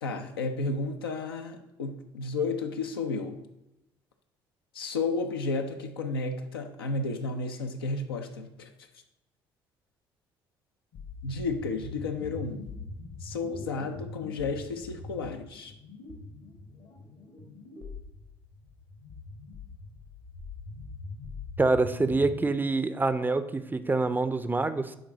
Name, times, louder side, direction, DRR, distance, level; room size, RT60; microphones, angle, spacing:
voice 1, 0.0-3.4 4.7-8.7 11.2-12.7 13.2-15.7, left 3 dB, 80° left, 5 dB, 0.6 m, -32 dB
sound 1, 10.9-22.5, left 3 dB, 60° left, 1.4 m, -43 dB
voice 2, 21.6-25.0, right 3 dB, 15° right, 11 dB, 0.5 m, -26 dB
10.0 x 3.8 x 3.9 m, 0.89 s
figure-of-eight pair, 50°, 12 cm